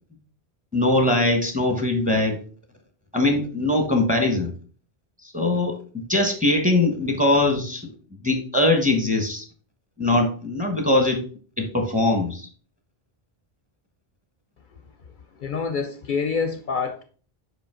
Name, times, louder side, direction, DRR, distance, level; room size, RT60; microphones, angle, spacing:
voice 1, 0.7-2.4 3.1-4.5 5.2-7.9 8.2-9.4 10.0-11.2 11.6-12.5, left 2 dB, 10° right, 3 dB, 1.1 m, -21 dB
voice 2, 15.4-17.0, left 5 dB, 60° left, 7 dB, 0.7 m, -26 dB
5.1 x 5.0 x 3.7 m, 0.41 s
omnidirectional pair, 1.0 m